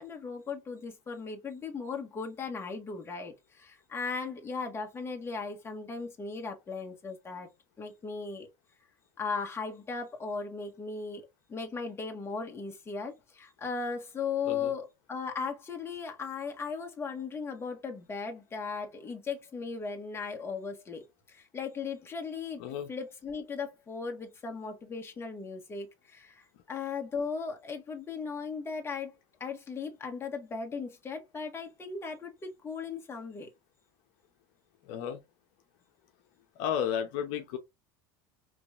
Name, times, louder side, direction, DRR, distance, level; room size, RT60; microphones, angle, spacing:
voice 1, 0.0-7.5 7.8-8.5 9.2-11.2 11.5-29.1 29.4-33.5, left 5 dB, 25° left, 1.5 m, -37 dB
voice 2, 34.9-35.2 36.6-37.6, left 9 dB, 70° left, 0.8 m, -32 dB
5.1 x 3.2 x 2.4 m
supercardioid pair, 95°, 10 cm